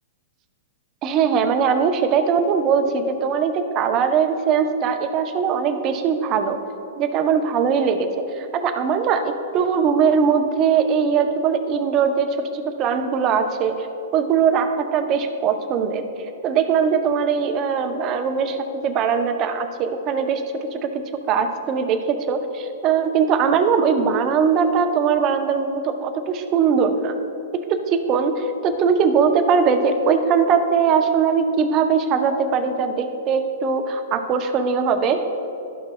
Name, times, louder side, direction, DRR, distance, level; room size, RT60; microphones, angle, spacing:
voice 1, 1.0-6.6 7.0-13.9 14.1-16.0 16.4-18.6 18.8-20.4 20.7-21.0 21.3-27.1 27.5-35.2, right 6 dB, 35° right, 7 dB, 0.6 m, -20 dB
11.5 x 5.9 x 2.2 m, 2.9 s
hypercardioid pair, 120°, 0 cm